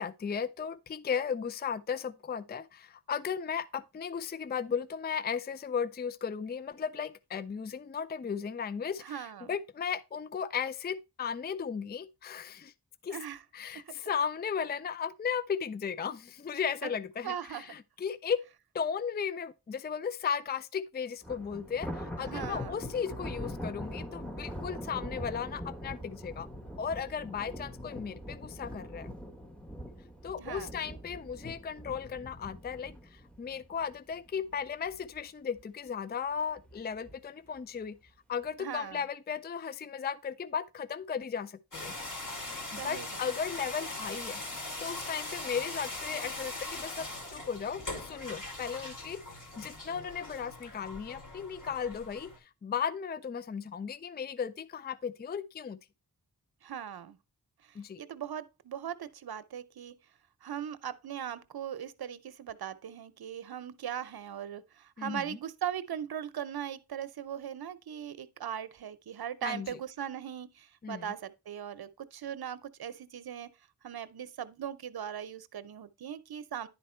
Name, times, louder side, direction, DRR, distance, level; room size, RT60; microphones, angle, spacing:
voice 1, 0.0-12.7 13.0-13.2 13.5-18.4 18.7-26.5 26.8-29.1 30.2-38.0 38.3-41.9 42.7-55.8 57.8-58.0 65.0-65.4 69.4-69.7 70.8-71.1, left 7 dB, 25° left, 0.4 m, -36 dB
voice 2, 9.0-9.5 13.1-13.4 13.7-13.9 17.2-17.7 22.2-22.8 30.4-30.7 38.6-39.1 42.8-43.1 56.6-57.2 57.6-59.9 60.4-73.5 73.8-76.7, right 9 dB, 70° right, 0.7 m, -39 dB
Thunder, 21.2-34.5 34.9-35.2 35.6-35.7 36.6-37.1, equal, 5° left, 1.0 m, -42 dB
sound 1, 41.7-52.4, left 2 dB, 55° left, 2.6 m, -41 dB
10.5 x 4.3 x 4.3 m
wide cardioid pair, 85°, 39 cm